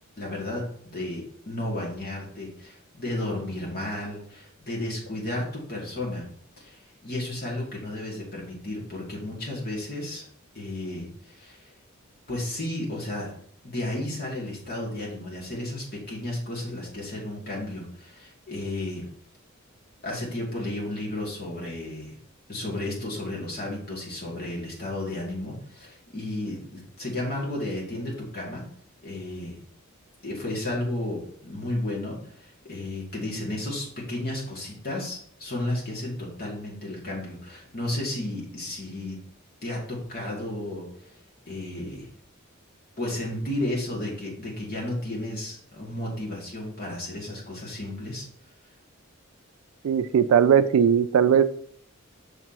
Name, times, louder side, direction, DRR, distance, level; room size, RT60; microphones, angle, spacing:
voice 1, 0.2-0.6 0.9-6.2 6.6-10.2 10.5-11.7 12.3-13.3 13.6-19.1 20.0-22.1 22.5-28.6 29.0-29.6 30.2-39.2 39.6-40.8 41.5-42.1 43.0-48.3, left 1 dB, 50° left, -4 dB, 2.5 m, -33 dB
voice 2, 49.8-51.4, right 8 dB, 85° right, 13 dB, 0.3 m, -19 dB
6.5 x 6.0 x 3.0 m, 0.63 s
head